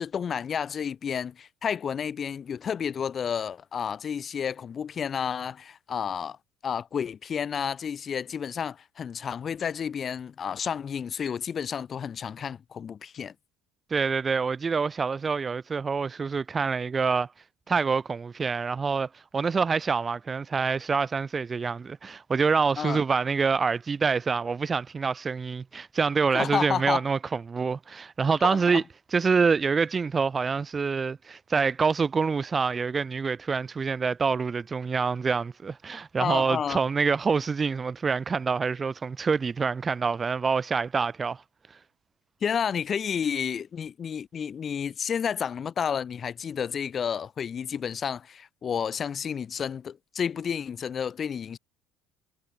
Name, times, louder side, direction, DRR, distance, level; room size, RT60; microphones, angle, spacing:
voice 1, 0.0-6.4 6.6-13.3 22.8-23.0 26.3-27.0 28.4-28.8 36.2-36.8 42.4-51.6, left 7 dB, 40° left, 2.9 m, -31 dB
voice 2, 13.9-17.3 17.7-28.8 29.1-41.4, right 5 dB, 30° right, 0.5 m, -26 dB
hypercardioid pair, 65°, 0 cm